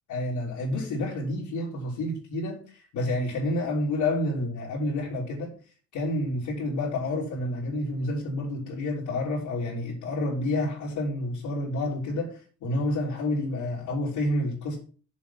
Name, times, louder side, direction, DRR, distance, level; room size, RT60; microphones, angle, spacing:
voice 1, 0.1-5.5 5.9-14.8, left 1 dB, 85° left, 3.3 m, -29 dB
7.4 x 7.1 x 5.7 m
cardioid pair, 90°, 30 cm